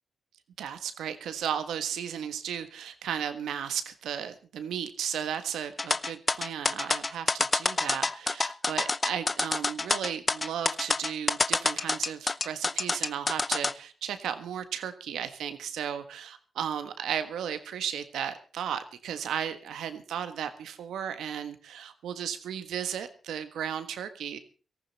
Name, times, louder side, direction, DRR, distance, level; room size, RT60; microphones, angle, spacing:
voice 1, 0.6-24.4, right 8 dB, 85° right, 10 dB, 1.5 m, -35 dB
sound 1, 5.8-13.7, left 3 dB, 40° left, 0.7 m, -27 dB
18.0 x 14.5 x 4.2 m, 0.38 s
supercardioid pair, 45°, 0 cm